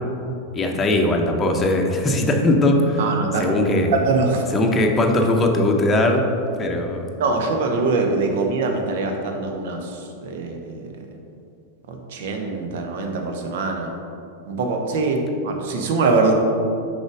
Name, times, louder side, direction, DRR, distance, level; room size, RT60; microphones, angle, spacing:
voice 1, 0.5-3.0 3.4-3.9 4.5-6.2 6.6-7.1, left 1 dB, 20° left, 2 dB, 0.8 m, -19 dB
voice 2, 3.0-3.5 3.9-4.4 7.2-11.1 11.9-13.9 14.5-16.3, right 3 dB, 55° right, 3 dB, 0.9 m, -23 dB
6.4 x 5.1 x 4.8 m, 2.7 s
figure-of-eight pair, 90°, 0 cm